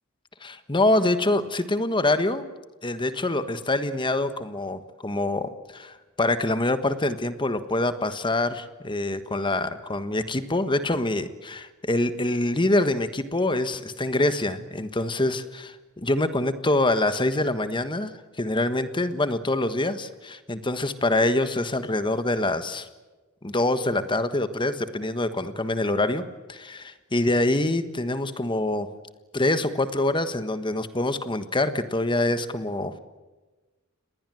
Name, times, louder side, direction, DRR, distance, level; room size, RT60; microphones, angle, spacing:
voice 1, 0.4-2.5 2.8-22.9 23.4-28.9 29.3-33.0, left 2 dB, 25° left, 11 dB, 1.4 m, -25 dB
29.0 x 20.5 x 7.8 m, 1.2 s
head